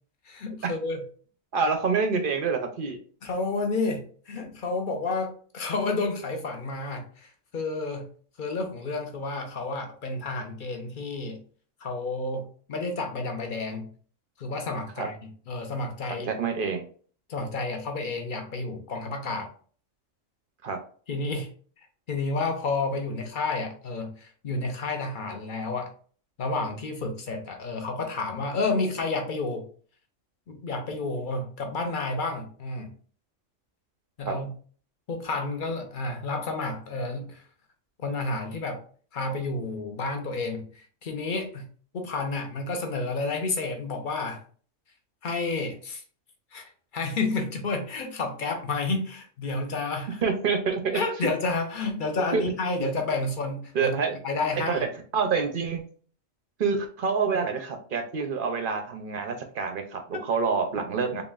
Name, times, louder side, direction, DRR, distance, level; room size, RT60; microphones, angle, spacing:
voice 1, 0.2-1.0 3.2-8.0 8.4-11.4 11.8-13.9 14.4-16.3 17.3-19.5 21.1-21.5 22.1-25.9 26.4-29.6 30.5-32.9 34.2-34.5 35.1-37.4 38.0-38.8 39.1-41.6 41.9-44.4 45.2-46.0 46.5-50.2 50.9-53.9 54.2-54.8 60.1-60.3, left 3 dB, 45° left, 4 dB, 0.8 m, -30 dB
voice 2, 1.5-3.0 15.0-15.1 16.3-16.8 20.6-20.8 34.3-34.4 50.2-51.0 52.3-52.4 53.7-54.2 54.7-54.8 55.1-55.8 56.6-61.2, right 5 dB, 55° right, 6 dB, 0.6 m, -27 dB
4.0 x 3.5 x 2.4 m, 0.44 s
omnidirectional pair, 1.4 m